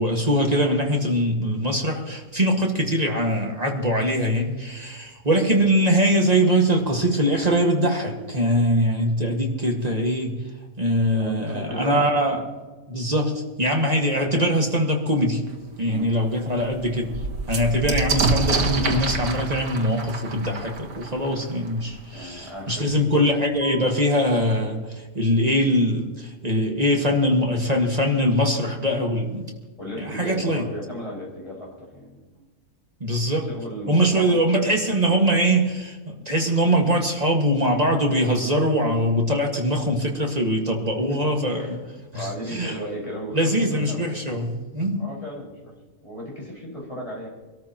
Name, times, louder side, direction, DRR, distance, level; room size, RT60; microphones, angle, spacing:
voice 1, 0.0-10.4 10.8-12.4 12.9-15.4 15.8-17.2 17.5-29.5 30.0-30.6 33.0-33.5 33.9-41.8 42.1-42.8 43.3-45.1, equal, 25° right, 1 dB, 1.7 m, -22 dB
voice 2, 11.1-12.1 15.9-16.1 22.1-22.9 29.8-32.5 33.4-35.2 41.1-41.8 42.1-44.2 45.0-45.7 46.0-47.3, equal, 20° left, -5 dB, 5.1 m, -36 dB
sound 1, 15.5-15.6 16.0-16.1 16.4-21.9 22.9-23.0 23.2-23.9, right 3 dB, 75° right, 2.0 m, -27 dB
25.0 x 13.5 x 2.9 m, 1.3 s
omnidirectional pair, 1.6 m